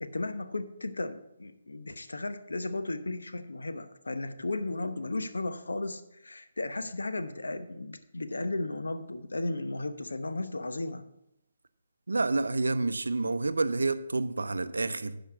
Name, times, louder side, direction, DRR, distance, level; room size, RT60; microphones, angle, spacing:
voice 1, 0.0-11.1, left 2 dB, 80° left, 0.8 m, -35 dB
voice 2, 12.1-15.2, right 3 dB, 80° right, 0.5 m, -29 dB
10.0 x 5.1 x 5.9 m
figure-of-eight pair, 145°, 0 cm